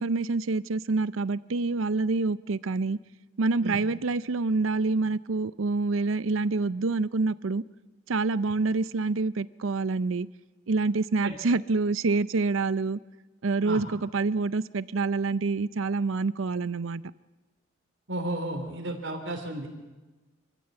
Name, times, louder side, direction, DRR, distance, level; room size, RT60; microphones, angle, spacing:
voice 1, 0.0-3.0 3.4-7.6 8.1-10.3 10.7-13.0 13.4-17.0, right 3 dB, 90° right, 0.6 m, -27 dB
voice 2, 18.1-19.7, right 1 dB, 70° right, 3.3 m, -33 dB
25.0 x 14.5 x 7.9 m
head